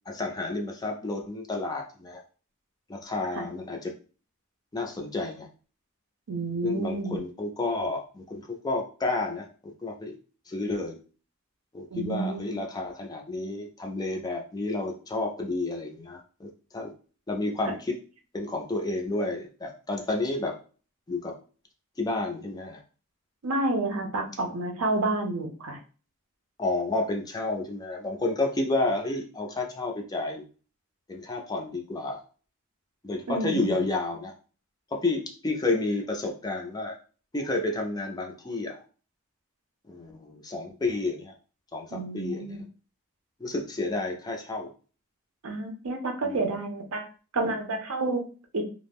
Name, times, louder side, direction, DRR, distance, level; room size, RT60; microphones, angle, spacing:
voice 1, 0.1-2.2 2.9-3.9 4.7-5.5 6.6-10.1 10.5-11.0 11.7-16.9 17.3-18.0 18.3-20.5 21.1-21.3 22.0-22.8 26.6-30.4 31.1-32.2 33.0-34.3 34.9-37.0 37.3-38.8 39.9-41.3 41.7-42.7 43.4-44.7 46.2-46.4, left 2 dB, 15° left, 1 dB, 0.3 m, -30 dB
voice 2, 6.3-7.2 11.9-12.6 23.4-25.8 33.3-33.8 41.9-42.6 45.4-47.1 47.3-48.2 48.5-48.7, right 2 dB, 80° right, 3 dB, 0.6 m, -29 dB
2.3 x 2.0 x 3.4 m, 0.38 s
head